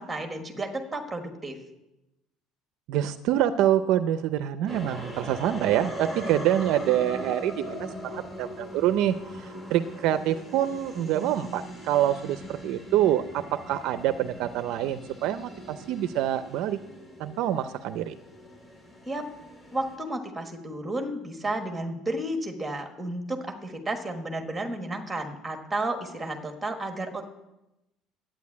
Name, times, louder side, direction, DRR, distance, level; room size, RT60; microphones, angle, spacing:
voice 1, 0.0-1.6 19.0-19.2 19.7-27.2, right 1 dB, 5° right, 4 dB, 1.4 m, -32 dB
voice 2, 2.9-9.1 9.7-16.8 17.2-18.1, right 11 dB, 55° right, 11 dB, 0.5 m, -26 dB
sound 1, 4.7-20.0, equal, 10° left, 2.7 m, -40 dB
11.5 x 9.1 x 8.4 m, 0.93 s
cardioid pair, 180°, 0 cm